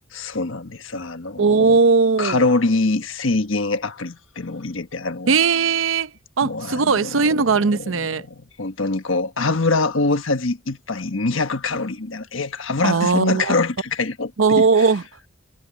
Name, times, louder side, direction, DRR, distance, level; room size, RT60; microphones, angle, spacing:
voice 1, 0.1-1.8 2.2-5.3 6.4-14.9, left 3 dB, 70° left, 1.4 m, -24 dB
voice 2, 1.4-2.5 5.3-6.1 6.4-8.2 12.8-13.5 14.4-15.0, right 4 dB, 75° right, 0.7 m, -18 dB
head